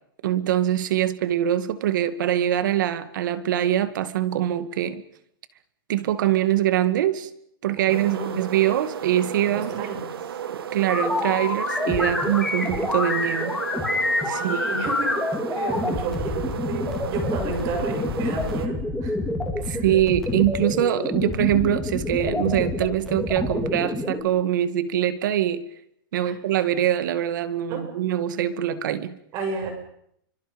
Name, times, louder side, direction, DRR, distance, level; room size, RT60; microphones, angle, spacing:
voice 1, 0.2-5.0 5.9-7.3 7.6-9.9 10.5-13.6 14.3-14.6 19.7-25.7 26.1-29.2, right 11 dB, 55° right, 12 dB, 2.2 m, -23 dB
voice 2, 7.8-8.4 9.6-10.1 14.3-19.1 19.7-19.9 26.2-26.4 27.7-27.9 29.3-29.7, right 3 dB, 30° right, 4 dB, 7.0 m, -32 dB
sound 1, 7.9-18.7, right 9 dB, 90° right, 2.0 m, -34 dB
sound 2, 10.9-24.2, left 2 dB, 5° left, 3.7 m, -27 dB
29.0 x 25.0 x 5.4 m, 0.73 s
supercardioid pair, 165°, 12 cm